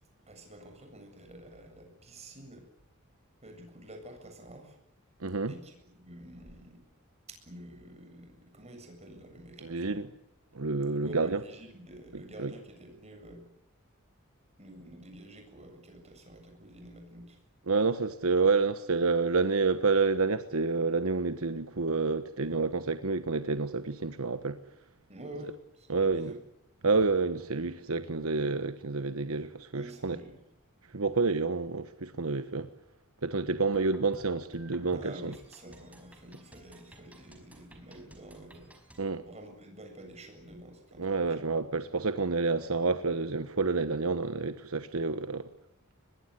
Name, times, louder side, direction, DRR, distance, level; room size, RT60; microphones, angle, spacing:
voice 1, 0.3-2.7 3.4-4.8 5.5-6.8 7.3-10.0 11.0-13.4 14.6-17.4 25.1-26.4 29.7-30.4 34.9-38.7 39.2-41.3, right 1 dB, 30° right, 7.5 m, -48 dB
voice 2, 5.2-5.5 9.6-10.1 10.5-11.4 12.1-12.5 17.7-24.6 25.9-26.3 26.8-30.2 30.9-32.7 33.2-35.3 39.0-39.2 41.0-45.5, right 4 dB, 80° right, 1.2 m, -29 dB
sound 1, 33.5-39.0, right 1 dB, 5° right, 5.1 m, -55 dB
23.5 x 21.5 x 9.8 m
head